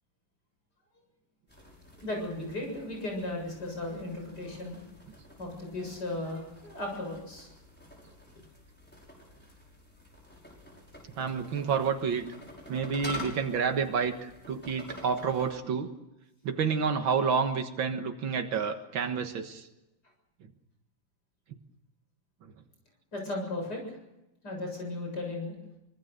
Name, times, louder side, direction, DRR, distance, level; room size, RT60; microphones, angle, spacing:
sound 1, 1.5-15.5, left 1 dB, 5° left, 6.1 m, -47 dB
voice 1, 2.0-4.8 5.4-7.5 23.1-23.8 24.4-25.5, left 2 dB, 55° left, 2 dB, 7.9 m, -36 dB
voice 2, 11.2-12.3 12.7-15.9 16.4-19.7, right 6 dB, 90° right, 5 dB, 2.3 m, -29 dB
25.0 x 22.0 x 6.8 m, 0.94 s
omnidirectional pair, 2.1 m